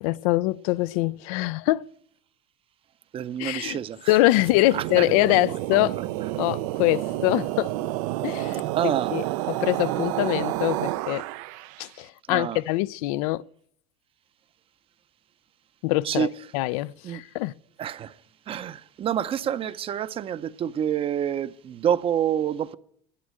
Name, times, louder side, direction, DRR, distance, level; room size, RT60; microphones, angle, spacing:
voice 1, 0.0-1.8 3.4-3.8 4.1-6.0 6.4-7.7 8.2-11.2 11.8-13.4 15.8-17.5, left 19 dB, 85° left, 0.4 m, -24 dB
voice 2, 3.1-4.2 4.7-5.1 5.7-5.8 8.7-9.2 12.3-12.6 16.0-16.3 17.0-17.2 17.8-18.2 18.5-22.8, right 9 dB, 30° right, 0.6 m, -27 dB
sound 1, 4.4-11.8, right 16 dB, 80° right, 0.5 m, -30 dB
11.5 x 8.8 x 7.6 m
cardioid pair, 140°, 18 cm